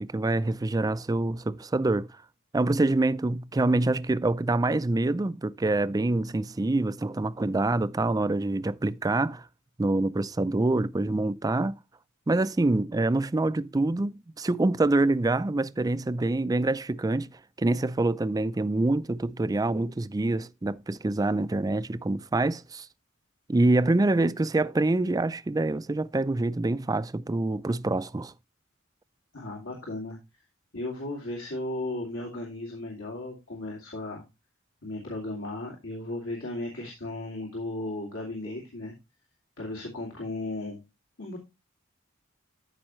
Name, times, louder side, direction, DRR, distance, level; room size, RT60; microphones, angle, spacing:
voice 1, 0.0-2.2 2.5-9.5 9.8-11.8 12.3-22.9 23.5-28.3, right 2 dB, 20° right, 0.4 m, -26 dB
voice 2, 29.3-30.2 30.7-34.2 34.8-38.9 39.6-40.8 41.2-41.4, left 2 dB, 85° left, 2.6 m, -35 dB
13.0 x 5.4 x 3.0 m
head